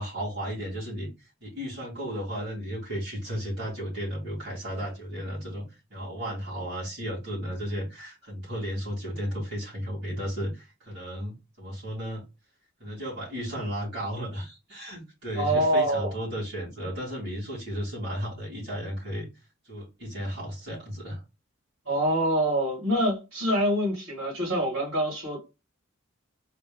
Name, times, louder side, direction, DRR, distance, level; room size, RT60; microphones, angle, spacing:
voice 1, 0.0-12.2 12.8-19.3 19.6-21.2, equal, 50° right, 2.8 m, -34 dB
voice 2, 15.4-16.1 21.9-25.4, right 1 dB, 80° right, 2.6 m, -25 dB
4.3 x 2.5 x 3.7 m
head